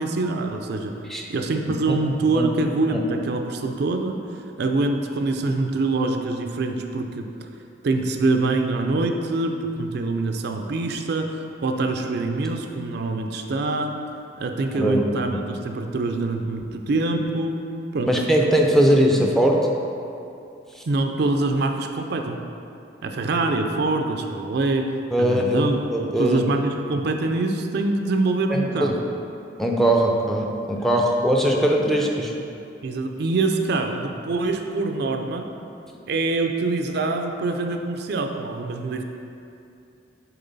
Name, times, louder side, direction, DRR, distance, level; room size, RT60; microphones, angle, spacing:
voice 1, 0.0-0.9 1.3-4.2 4.6-7.3 7.8-13.9 14.4-17.6 17.9-18.1 18.8-19.3 20.9-22.4 23.0-24.9 25.2-28.9 30.7-30.9 32.8-35.5 36.1-39.0, right 3 dB, 60° right, 4 dB, 0.4 m, -25 dB
voice 2, 14.7-15.4 18.1-19.7 20.8-20.9 25.1-25.6 25.9-26.4 28.5-29.0 29.6-32.3, equal, ahead, -1 dB, 0.4 m, -20 dB
6.8 x 4.4 x 4.0 m, 2.6 s
head